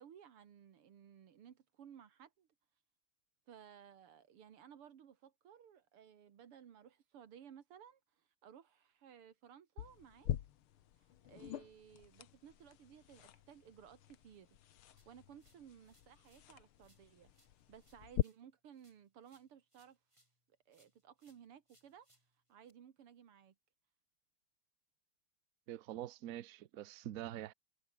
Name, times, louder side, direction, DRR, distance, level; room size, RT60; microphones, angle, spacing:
voice 1, 0.0-2.5 3.5-10.3 10.9-14.6 14.9-20.0 20.7-23.5, right 8 dB, 85° right, 2.6 m, -59 dB
sound 1, 9.8-18.2, left 11 dB, 75° left, 2.0 m, -44 dB
sound 2, 15.0-16.5 16.8-20.4 20.7-22.7, right 1 dB, 10° right, 7.2 m, -75 dB
voice 2, 25.7-27.5, right 12 dB, 65° right, 0.8 m, -45 dB
omnidirectional pair, 2.4 m